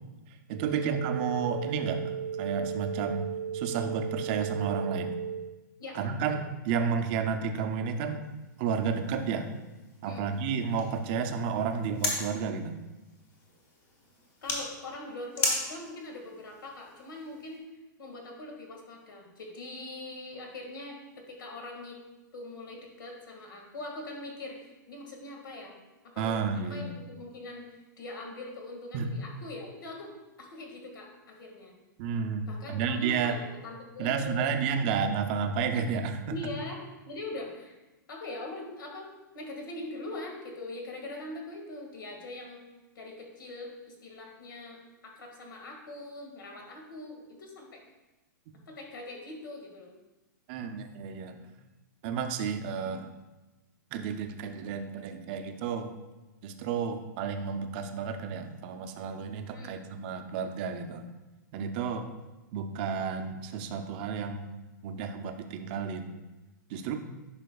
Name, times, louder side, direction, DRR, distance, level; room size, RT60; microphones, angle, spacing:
voice 1, 0.5-3.3 3.5-5.2 5.9-8.3 8.6-9.5 10.0-12.8 26.2-27.0 28.9-29.1 32.0-33.4 34.0-36.5 50.5-51.4 52.0-53.1 53.9-55.9 56.4-61.1 61.5-62.1 62.5-64.5 64.8-66.1 66.7-67.0, right 6 dB, 30° right, 6 dB, 0.5 m, -31 dB
sound 1, 0.5-5.5, right 8 dB, 75° right, 0.6 m, -35 dB
sound 2, 8.2-17.6, left 2 dB, 25° left, 1.1 m, -38 dB
voice 2, 14.4-17.7 18.0-22.0 22.3-25.8 26.1-31.7 32.5-34.5 36.3-37.7 38.1-42.6 43.0-47.8 48.7-49.9 59.5-59.8, left 2 dB, 90° left, 1 dB, 1.8 m, -42 dB
10.0 x 5.7 x 2.3 m, 1.1 s
hypercardioid pair, 170°, 11 cm